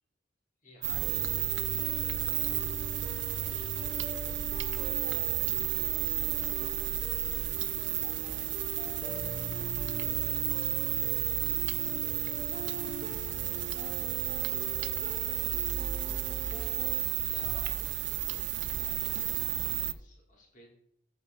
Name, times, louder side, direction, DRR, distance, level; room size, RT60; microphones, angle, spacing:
voice 1, 0.6-2.5 3.1-6.9 16.8-20.7, left 1 dB, 40° left, -2 dB, 3.2 m, -56 dB
sound 1, 0.8-19.9, right 14 dB, 65° right, 0.4 m, -32 dB
sound 2, 1.0-17.0, right 1 dB, 30° right, 1.8 m, -43 dB
voice 2, 9.3-13.1 13.7-14.6 15.0-16.3, left 1 dB, 85° left, -5 dB, 3.1 m, -59 dB
14.0 x 5.4 x 4.0 m, 0.69 s
head